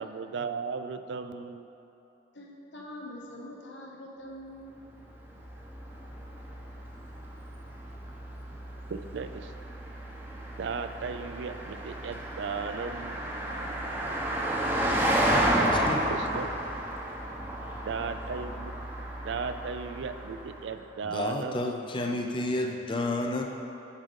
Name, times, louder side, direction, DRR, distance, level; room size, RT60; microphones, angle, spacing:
voice 1, 0.0-1.7 8.9-9.5 10.6-13.2 16.1-16.5 17.9-18.7 19.2-21.7, right 5 dB, 75° right, 9 dB, 0.4 m, -36 dB
voice 2, 2.3-4.8, left 1 dB, 75° left, -2 dB, 1.2 m, -44 dB
Car passing by, 5.0-20.7, right 1 dB, 10° right, 0.7 m, -32 dB
voice 3, 15.7-16.1 17.7-17.8 21.0-23.4, left 2 dB, 25° left, 3 dB, 0.4 m, -31 dB
7.4 x 5.1 x 5.1 m, 2.9 s
head